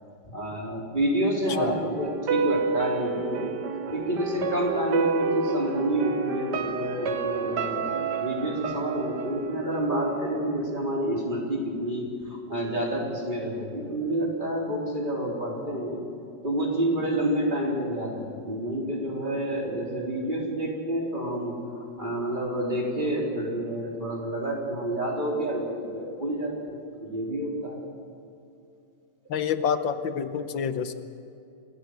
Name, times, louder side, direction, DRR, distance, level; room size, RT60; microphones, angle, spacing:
voice 1, 0.3-3.5 3.9-16.0 16.4-27.8, right 1 dB, 25° right, -2 dB, 4.1 m, -29 dB
sound 1, 1.5-10.5 10.8-10.9, right 5 dB, 65° right, 1.7 m, -30 dB
voice 2, 29.3-30.9, left 7 dB, 90° left, 9 dB, 1.8 m, -28 dB
27.5 x 15.5 x 8.1 m, 2.6 s
omnidirectional pair, 2.0 m